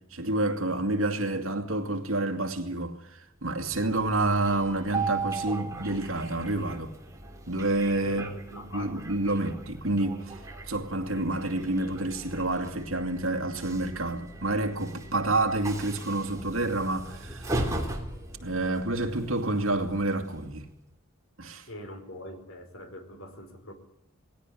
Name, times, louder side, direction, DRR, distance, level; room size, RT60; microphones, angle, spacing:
voice 1, 0.1-6.9 7.5-8.3 8.7-10.4 10.7-17.8 18.4-20.7 21.4-21.7, right 2 dB, 70° right, 2.4 m, -29 dB
voice 2, 1.2-1.5 8.0-9.4 21.7-23.7, left 1 dB, 70° left, 4.5 m, -43 dB
Train, 3.4-20.7, right 2 dB, 15° right, 3.3 m, -38 dB
19.5 x 17.0 x 9.9 m
head